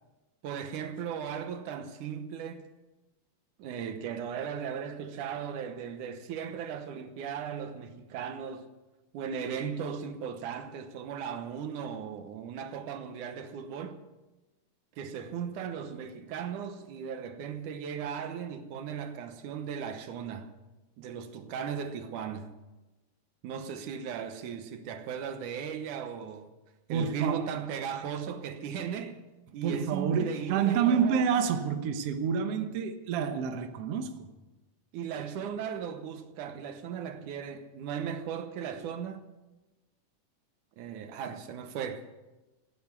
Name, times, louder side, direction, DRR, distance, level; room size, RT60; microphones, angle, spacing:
voice 1, 0.4-2.6 3.6-8.7 9.1-14.0 15.0-20.5 21.0-22.5 23.4-26.5 26.9-29.2 29.5-31.3 34.9-39.2 40.8-42.1, right 7 dB, 85° right, 2.5 m, -37 dB
voice 2, 26.9-27.4 29.6-34.3, right 7 dB, 60° right, 1.9 m, -28 dB
15.5 x 10.0 x 8.2 m
omnidirectional pair, 3.6 m